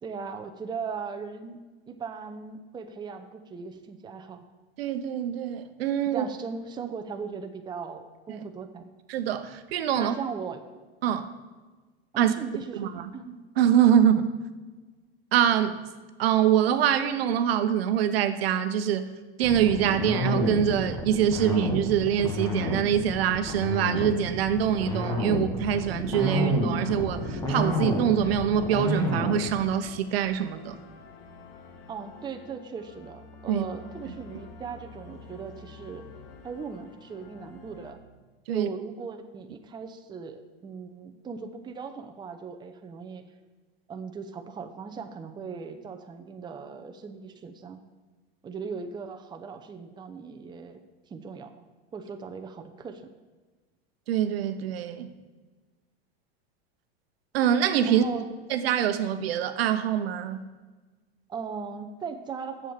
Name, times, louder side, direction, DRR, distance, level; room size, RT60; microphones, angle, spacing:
voice 1, 0.0-1.6 1.9-4.4 6.1-8.9 10.0-10.6 12.1-12.9 13.1-13.4 31.9-36.1 36.4-38.0 38.5-43.2 43.9-47.8 48.4-50.8 51.1-51.6 51.9-53.1 57.8-58.3 61.3-62.7, right 5 dB, 15° right, 6 dB, 0.7 m, -38 dB
voice 2, 4.8-6.2 8.3-8.4 9.1-10.1 11.0-11.3 12.2-12.3 12.7-13.1 13.6-14.3 15.3-15.8 16.2-19.1 19.4-30.8 33.5-33.7 38.5-38.7 54.1-55.1 57.3-58.0 58.5-60.4, right 9 dB, 75° right, 9 dB, 0.9 m, -24 dB
sound 1, 19.4-29.5, left 1 dB, 10° left, 1.7 m, -29 dB
sound 2, 27.1-37.9, left 4 dB, 70° left, 1.4 m, -48 dB
7.4 x 7.2 x 6.6 m, 1.3 s
hypercardioid pair, 115°, 31 cm